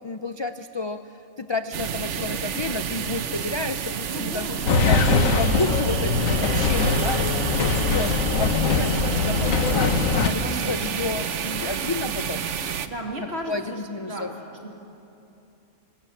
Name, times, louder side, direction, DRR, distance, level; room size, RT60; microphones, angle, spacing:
voice 1, 0.0-5.0 5.4-12.5 13.4-14.3, left 3 dB, 45° left, 9 dB, 0.3 m, -31 dB
sound 1, 1.7-12.9, right 7 dB, 65° right, 1.2 m, -30 dB
voice 2, 4.1-5.3 10.2-11.0 12.9-14.3 14.6-14.7, right 1 dB, 50° right, 0 dB, 3.1 m, -35 dB
sound 2, 4.7-10.3, left 3 dB, 85° left, 1.6 m, -22 dB
22.0 x 20.0 x 8.8 m, 2.8 s
omnidirectional pair, 1.4 m